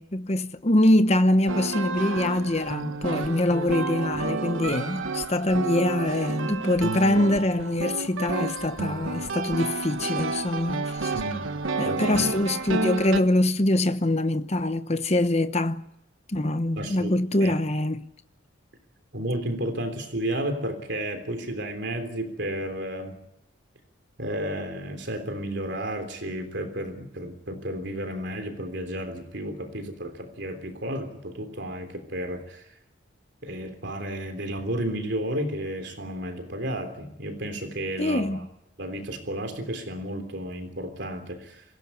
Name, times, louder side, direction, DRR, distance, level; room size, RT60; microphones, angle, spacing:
voice 1, 0.0-11.1 11.8-15.8 16.3-18.1 38.0-38.4, left 1 dB, 30° left, 0.9 m, -24 dB
sound 1, 1.5-13.2, right 3 dB, 80° right, 1.3 m, -30 dB
voice 2, 11.1-11.5 11.8-12.2 16.8-17.6 19.1-23.2 24.2-32.7 33.4-38.4 38.8-41.6, right 1 dB, 60° right, 3.5 m, -32 dB
26.0 x 16.5 x 9.8 m
head